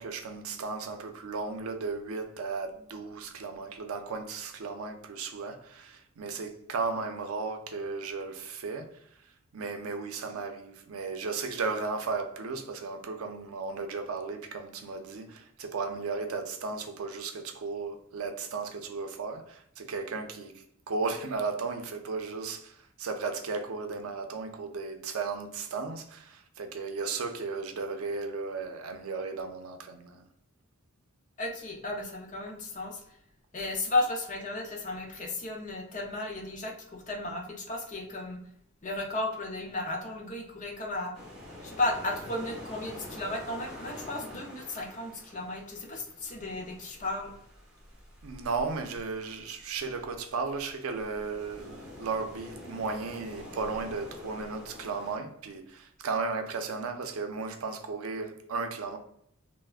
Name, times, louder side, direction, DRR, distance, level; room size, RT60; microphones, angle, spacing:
voice 1, 0.0-8.9 9.5-30.3 48.2-59.0, right 4 dB, 80° right, 0.5 m, -35 dB
voice 2, 31.4-33.0 33.5-38.4 38.8-41.1 41.6-47.3, left 2 dB, 35° left, 0.6 m, -34 dB
sound 1, 41.1-55.2, left 1 dB, ahead, 0.8 m, -47 dB
3.4 x 2.0 x 2.3 m
head